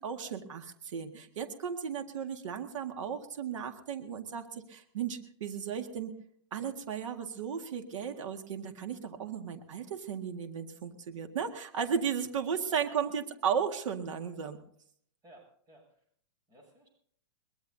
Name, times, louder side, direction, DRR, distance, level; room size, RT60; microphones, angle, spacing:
voice 1, 0.0-6.1 6.5-14.6, right 7 dB, 80° right, 5 dB, 1.9 m, -35 dB
voice 2, 15.2-16.0 16.5-16.9, right 1 dB, 20° right, 0 dB, 7.6 m, -58 dB
23.0 x 21.0 x 2.8 m, 0.63 s
hypercardioid pair, 145°, 16 cm